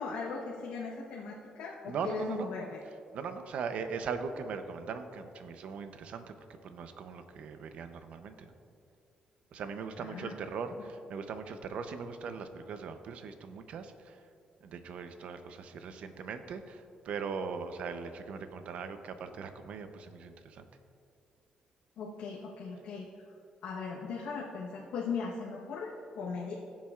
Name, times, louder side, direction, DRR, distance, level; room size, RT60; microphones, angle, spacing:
voice 1, 0.0-2.8 10.0-10.3 22.0-23.1 23.6-26.5, left 4 dB, 90° left, -3 dB, 1.1 m, -38 dB
voice 2, 1.9-2.5 3.1-6.4 6.6-8.5 9.5-14.3 14.6-20.7, right 5 dB, 70° right, 8 dB, 0.7 m, -40 dB
17.0 x 7.3 x 2.4 m, 2.5 s
cardioid pair, 120°, 2 cm